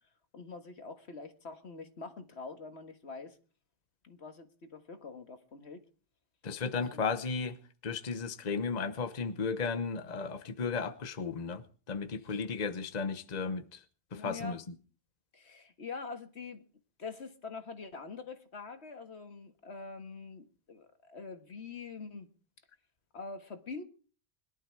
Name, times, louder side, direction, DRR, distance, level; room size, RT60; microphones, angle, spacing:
voice 1, 0.3-3.4 4.0-5.8 6.6-7.0 12.3-12.4 14.1-14.6 15.3-16.6 17.0-22.3 23.1-23.8, left 4 dB, 75° left, 1.9 m, -45 dB
voice 2, 6.4-13.8 14.1-14.8, left 5 dB, 40° left, 1.0 m, -35 dB
22.0 x 12.0 x 4.6 m
omnidirectional pair, 1.1 m